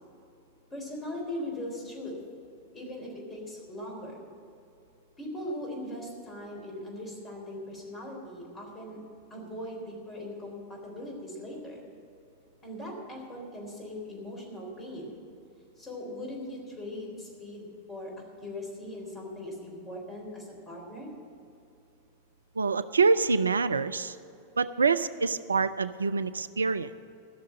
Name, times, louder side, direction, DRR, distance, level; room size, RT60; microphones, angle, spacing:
voice 1, 0.7-2.2 2.7-4.2 5.2-9.0 9.3-11.8 12.6-15.1 15.8-18.1 18.4-21.1, left 1 dB, 20° left, 0 dB, 3.7 m, -40 dB
voice 2, 22.6-24.2 24.6-27.0, right 4 dB, 75° right, 15 dB, 0.3 m, -26 dB
15.0 x 6.6 x 8.9 m, 2.6 s
figure-of-eight pair, 90°, 0 cm